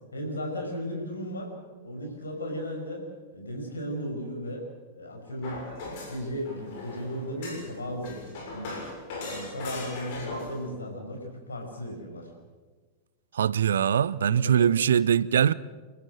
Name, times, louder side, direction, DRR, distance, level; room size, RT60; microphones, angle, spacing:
voice 1, 0.1-1.5 1.8-3.0 3.3-4.6 4.9-5.6 6.1-8.8 9.2-12.3 14.2-14.7, equal, 75° left, 5.8 m, -35 dB
sound 1, 5.4-10.6, left 2 dB, 50° left, 6.8 m, -39 dB
voice 2, 13.3-15.5, right 8 dB, 65° right, 0.6 m, -22 dB
29.5 x 14.0 x 7.9 m
figure-of-eight pair, 90°, 0 cm